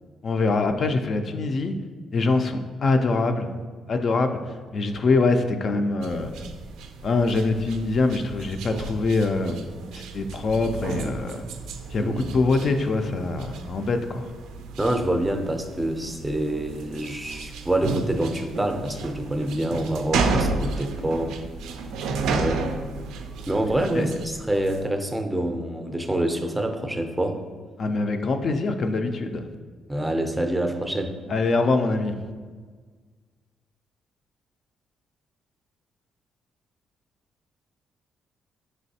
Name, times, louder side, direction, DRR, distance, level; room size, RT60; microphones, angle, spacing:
voice 1, 0.2-1.7 2.1-3.5 3.9-6.3 7.0-9.7 9.9-11.4 11.9-14.3 23.9-24.1 27.8-29.5 31.3-32.2, left 3 dB, 50° left, 6 dB, 0.3 m, -24 dB
sound 1, 6.0-24.9, right 3 dB, 90° right, 0.3 m, -32 dB
voice 2, 14.8-21.4 22.3-22.6 23.5-27.4 29.9-31.2, right 1 dB, 10° right, 5 dB, 0.5 m, -26 dB
5.1 x 3.2 x 2.7 m, 1.5 s
cardioid pair, 90°, 0 cm